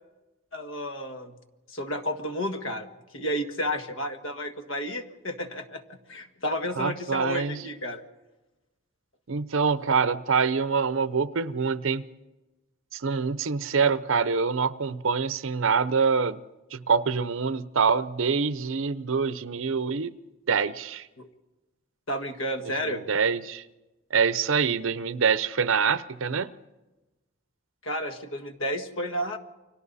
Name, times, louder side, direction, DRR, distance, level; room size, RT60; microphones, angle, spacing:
voice 1, 0.5-1.4 1.7-2.9 3.1-8.0 21.2-21.3 22.1-23.0 27.8-29.4, equal, 75° left, 6 dB, 1.7 m, -31 dB
voice 2, 6.8-7.6 9.3-12.1 12.9-16.4 16.7-20.1 20.5-21.0 22.8-23.6 24.1-26.5, right 5 dB, 75° right, 15 dB, 0.7 m, -25 dB
29.5 x 24.5 x 4.1 m, 1.1 s
head